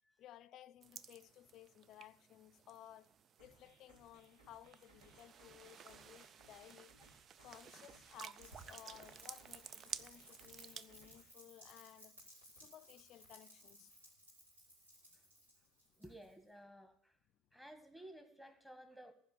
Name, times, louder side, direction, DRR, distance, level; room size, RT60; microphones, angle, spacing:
voice 1, 0.2-3.1 3.4-6.9 7.4-14.0 15.2-15.3 15.8-16.0, left 12 dB, 50° left, 0.5 m, -58 dB
sound 1, 0.8-11.0, right 7 dB, 40° right, 0.5 m, -54 dB
sound 2, 3.4-11.4, right 2 dB, 75° right, 3.6 m, -68 dB
Rain, 8.4-16.5, equal, 90° right, 4.2 m, -61 dB
voice 2, 16.0-17.2 17.5-19.1, right 1 dB, 5° right, 2.0 m, -56 dB
15.0 x 5.3 x 8.6 m
hypercardioid pair, 70°, 0 cm